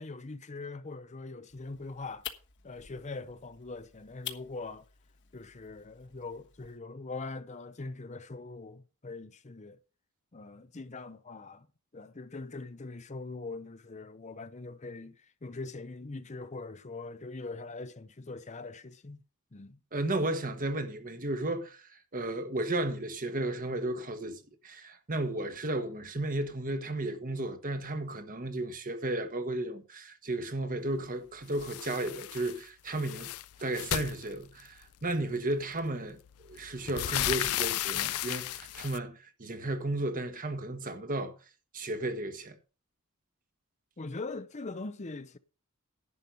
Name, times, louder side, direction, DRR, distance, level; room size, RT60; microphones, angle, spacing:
voice 1, 0.0-2.3 2.6-4.8 5.3-9.8 10.3-11.7 11.9-19.2 19.5-19.8 44.0-45.4, left 3 dB, 30° left, 0.7 m, -42 dB
sound 1, 1.5-6.8, left 10 dB, 55° left, 1.3 m, -48 dB
voice 2, 19.9-21.8 22.1-33.3 33.6-36.2 36.5-41.3 41.7-42.6, right 2 dB, 40° right, 1.4 m, -34 dB
sound 2, 31.6-32.6 32.9-34.8 35.8-35.9 36.3-39.0, left 13 dB, 80° left, 0.4 m, -34 dB
11.0 x 7.8 x 5.4 m
head